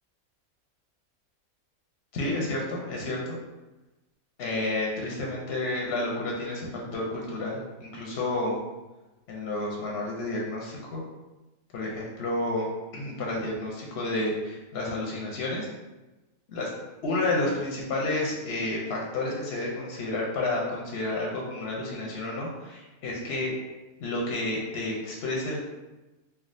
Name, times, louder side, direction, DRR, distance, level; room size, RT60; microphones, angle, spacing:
voice 1, 2.1-3.4 4.4-8.6 9.3-11.0 11.7-12.7 12.9-15.7 16.5-16.7 17.0-23.5 24.0-25.6, left 2 dB, 60° left, -2 dB, 0.7 m, -30 dB
3.4 x 2.3 x 2.5 m, 1.1 s
omnidirectional pair, 1.5 m